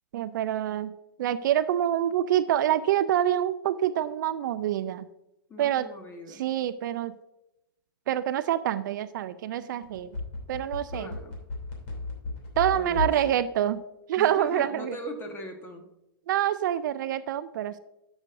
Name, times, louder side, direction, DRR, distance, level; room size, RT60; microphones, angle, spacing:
voice 1, 0.1-0.9 1.2-5.1 5.6-5.9 6.4-7.1 8.1-10.1 10.5-11.1 12.6-13.8 14.1-14.9 16.3-17.8, right 11 dB, 55° right, 14 dB, 0.4 m, -26 dB
voice 2, 5.5-6.5 10.9-11.4 12.7-13.4 14.1-15.9, left 1 dB, 15° left, 4 dB, 1.4 m, -40 dB
sound 1, 9.8-13.2 13.6-13.7, left 3 dB, 50° left, 2.8 m, -32 dB
12.5 x 6.2 x 2.5 m, 0.89 s
hypercardioid pair, 115°, 12 cm